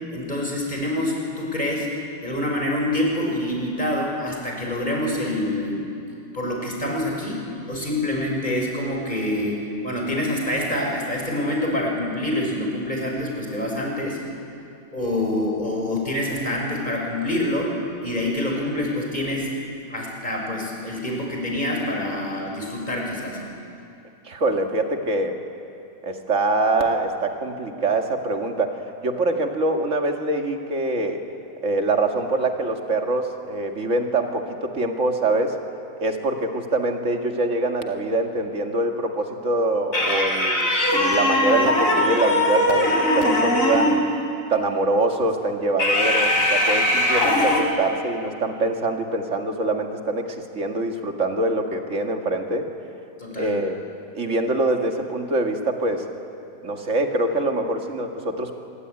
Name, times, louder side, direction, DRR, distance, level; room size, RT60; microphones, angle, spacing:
voice 1, 0.1-1.9 2.2-5.8 6.3-14.2 14.9-17.7 18.0-19.5 19.9-23.4 53.2-53.5, left 1 dB, 20° left, -1 dB, 6.2 m, -26 dB
voice 2, 24.2-25.4 26.0-31.2 31.6-35.6 36.0-44.0 44.5-52.7 53.4-53.8 54.1-56.0 56.6-58.6, right 2 dB, 35° right, 3 dB, 2.3 m, -24 dB
sound 1, 39.9-44.1 45.8-47.6, left 1 dB, 35° left, 4.0 m, -20 dB
26.5 x 23.0 x 9.8 m, 2.6 s
omnidirectional pair, 2.3 m